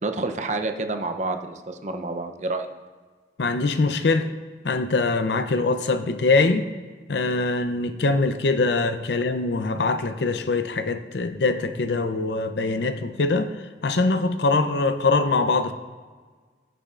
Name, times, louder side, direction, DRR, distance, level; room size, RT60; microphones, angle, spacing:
voice 1, 0.0-2.7, right 2 dB, 40° right, 6 dB, 0.6 m, -28 dB
voice 2, 3.4-4.3 4.6-6.7 7.1-13.6 13.8-15.7, left 3 dB, 70° left, 9 dB, 0.6 m, -23 dB
17.0 x 6.9 x 2.5 m, 1.5 s
head